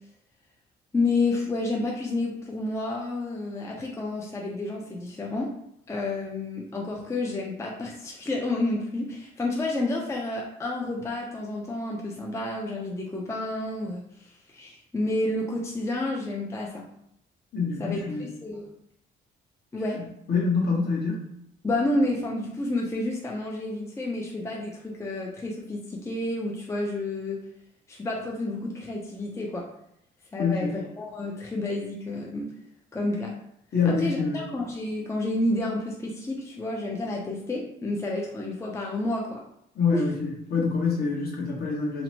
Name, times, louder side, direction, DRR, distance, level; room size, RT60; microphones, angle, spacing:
voice 1, 0.9-5.5 5.9-16.9 17.8-18.7 19.7-20.0 21.6-27.4 27.9-29.7 30.3-32.5 32.9-33.3 33.9-39.4 39.9-40.0, left 2 dB, 15° left, -1 dB, 0.4 m, -30 dB
voice 2, 17.5-18.3 20.3-21.3 30.4-30.8 33.7-34.5 39.7-42.0, left 4 dB, 50° left, -2 dB, 1.0 m, -26 dB
2.8 x 2.1 x 2.8 m, 0.76 s
cardioid pair, 90°, 20 cm